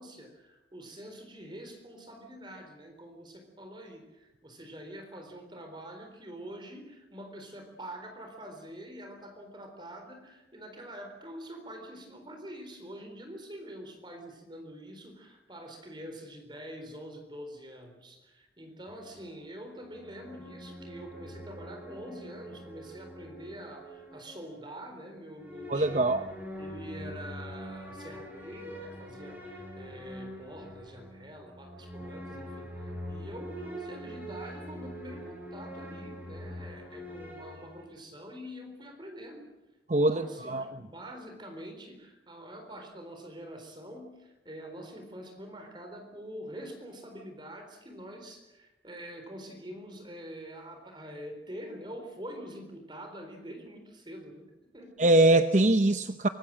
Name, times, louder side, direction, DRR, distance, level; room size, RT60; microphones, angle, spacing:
voice 1, 0.0-26.2 26.6-39.5 39.9-54.5 54.7-54.9, equal, 25° right, 5 dB, 4.0 m, -45 dB
sound 1, 18.9-24.8 25.4-37.9, equal, 10° right, 5.7 m, -44 dB
voice 2, 25.7-26.2 39.9-40.7 55.0-56.3, right 2 dB, 40° right, 9 dB, 0.8 m, -23 dB
25.0 x 22.0 x 7.5 m, 1.0 s
head